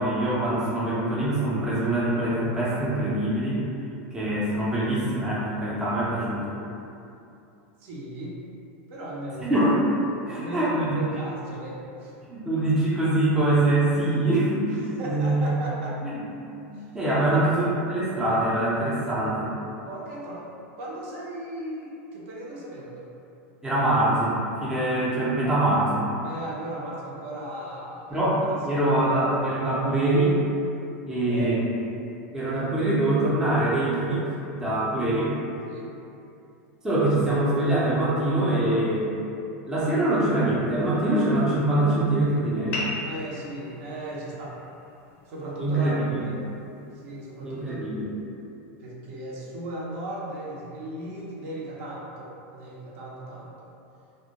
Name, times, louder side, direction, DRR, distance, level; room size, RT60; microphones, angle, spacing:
voice 1, 0.0-3.6 4.1-6.6 9.5-9.8 10.3-11.0 12.3-14.8 15.0-15.5 16.0-16.2 16.7-19.5 23.6-26.0 28.1-30.4 31.1-31.6 32.3-35.3 36.8-39.1 39.6-42.8 45.6-46.2 47.4-48.1, right 1 dB, 5° right, -9 dB, 0.4 m, -24 dB
voice 2, 7.8-8.5 8.9-9.5 10.2-12.1 14.8-16.0 16.7-17.5 19.8-20.4 20.8-23.1 26.2-29.4 31.3-31.6 35.7-35.9 43.0-44.6 45.3-46.3 46.9-47.8 48.8-53.7, right 1 dB, 60° right, -5 dB, 0.6 m, -37 dB
sound 1, 42.7-47.8, left 2 dB, 90° left, 0.5 m, -39 dB
2.1 x 2.1 x 2.8 m, 2.7 s
supercardioid pair, 140°, 7 cm